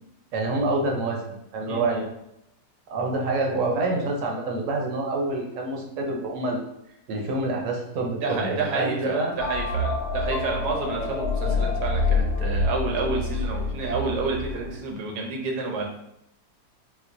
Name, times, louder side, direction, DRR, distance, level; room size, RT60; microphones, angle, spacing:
voice 1, 0.3-2.1 2.9-6.6 7.1-9.3 11.5-11.6, right 2 dB, 65° right, 1 dB, 0.8 m, -27 dB
voice 2, 1.7-2.0 8.2-15.9, right 3 dB, 85° right, 0 dB, 1.2 m, -29 dB
sound 1, 9.4-14.8, left 3 dB, 85° left, 1.2 m, -27 dB
4.3 x 2.1 x 2.6 m, 0.80 s
omnidirectional pair, 1.7 m